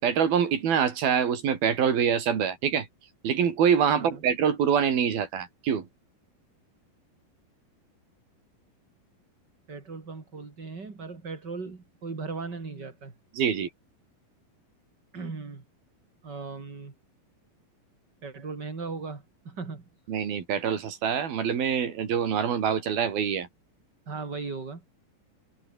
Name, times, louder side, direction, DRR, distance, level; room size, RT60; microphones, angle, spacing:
voice 1, 0.0-2.9 3.2-5.9 13.3-13.7 20.1-23.5, right 7 dB, 85° right, 5.1 m, -25 dB
voice 2, 9.7-13.1 15.1-15.6 16.2-16.9 18.2-19.9 24.1-24.8, right 4 dB, 30° right, 3.9 m, -37 dB
omnidirectional pair, 4.2 m